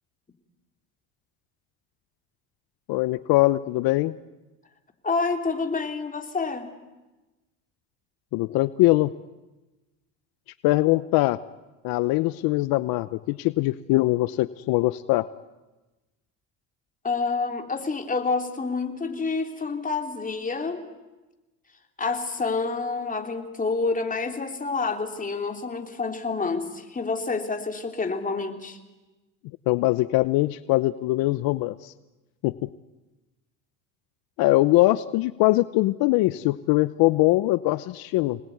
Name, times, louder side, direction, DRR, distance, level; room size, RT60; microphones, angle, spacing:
voice 1, 2.9-4.1 8.3-9.1 10.6-11.4 11.8-15.3 29.7-31.9 32.4-32.5 34.4-38.4, left 19 dB, 75° left, 15 dB, 0.8 m, -22 dB
voice 2, 5.0-6.7 17.0-20.8 22.0-28.8, left 4 dB, 20° left, 5 dB, 3.4 m, -28 dB
26.0 x 20.0 x 9.4 m, 1.1 s
supercardioid pair, 100°, 37 cm